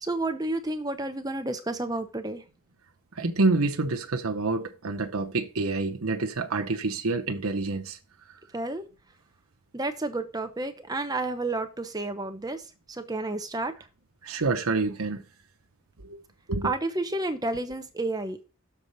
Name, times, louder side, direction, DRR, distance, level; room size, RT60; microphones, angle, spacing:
voice 1, 0.0-2.4 8.5-8.8 9.7-12.6 12.9-13.7 16.6-18.4, right 2 dB, 15° right, 0.9 m, -31 dB
voice 2, 3.2-8.0 14.2-15.2 16.0-16.2 16.5-16.7, right 3 dB, 75° right, 0.9 m, -27 dB
7.0 x 4.1 x 6.4 m
head